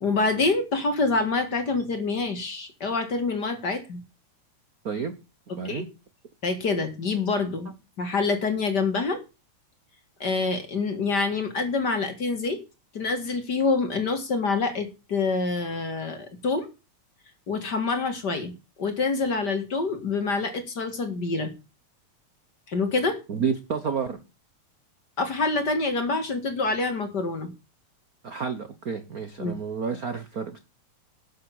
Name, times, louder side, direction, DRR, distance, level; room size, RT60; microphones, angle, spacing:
voice 1, 0.0-4.0 5.6-5.8 6.4-7.7 8.0-9.2 10.2-12.6 12.9-16.7 17.5-18.5 18.8-21.5 22.7-23.2 25.2-27.5 29.4-29.6, left 3 dB, 40° left, 7 dB, 2.2 m, -26 dB
voice 2, 5.5-5.9 23.3-24.2 28.2-30.6, right 6 dB, 70° right, 9 dB, 0.8 m, -30 dB
12.0 x 7.3 x 7.3 m, 0.29 s
omnidirectional pair, 3.4 m